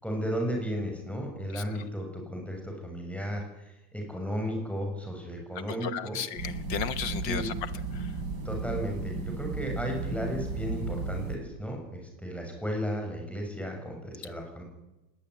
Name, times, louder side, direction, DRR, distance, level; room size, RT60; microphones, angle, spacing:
voice 1, 0.0-3.4 3.9-6.2 7.2-7.5 8.4-14.6, equal, ahead, 2 dB, 7.0 m, -34 dB
voice 2, 5.8-7.5 7.9-8.1, left 8 dB, 90° left, 13 dB, 2.0 m, -34 dB
sound 1, 6.4-11.4, right 3 dB, 65° right, 4.1 m, -34 dB
19.5 x 19.0 x 9.9 m, 1.0 s
omnidirectional pair, 1.9 m